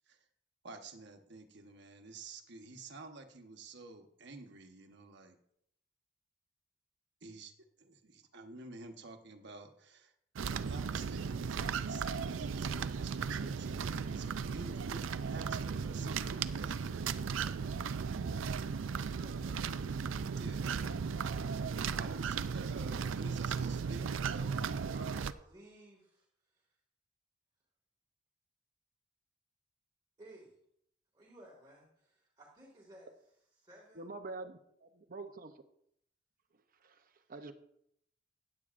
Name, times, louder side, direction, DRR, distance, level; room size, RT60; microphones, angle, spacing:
voice 1, 0.6-5.3 7.2-7.5 7.8-10.1 10.4-11.6 11.8-16.7 20.4-20.7 21.2-21.4 21.9-25.1, right 3 dB, 65° right, 1.2 m, -50 dB
sound 1, 10.4-25.3, right 6 dB, 85° right, 0.4 m, -36 dB
voice 2, 19.0-19.7 25.1-26.7 30.2-30.6 31.1-34.1 37.2-37.3, right 1 dB, 20° right, 2.1 m, -58 dB
voice 3, 34.0-35.6 36.8-37.0 37.3-37.5, right 3 dB, 45° right, 0.7 m, -45 dB
16.0 x 9.8 x 2.5 m
head